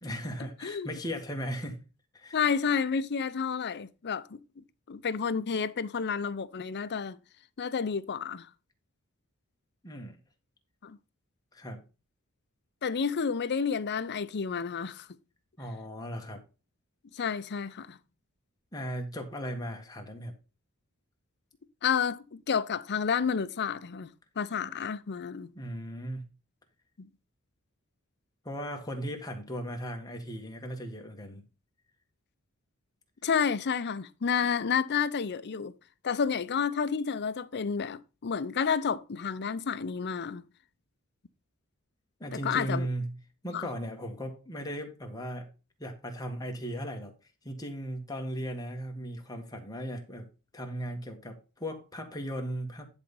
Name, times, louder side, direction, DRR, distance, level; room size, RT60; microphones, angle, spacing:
voice 1, 0.0-1.8 2.1-2.4 9.8-10.2 11.5-11.8 15.6-16.4 18.7-20.3 24.6-24.7 25.5-26.2 28.4-31.4 42.2-45.5 45.8-47.1 47.4-50.3 50.5-52.9, equal, 20° left, 1.7 m, -37 dB
voice 2, 2.3-4.4 4.9-7.2 7.6-8.5 10.8-11.0 12.8-15.1 17.1-18.0 21.8-25.5 27.0-27.1 33.2-35.7 36.0-40.4 42.4-42.9 43.5-43.7, left 6 dB, 50° left, 0.6 m, -30 dB
10.5 x 4.1 x 5.3 m
head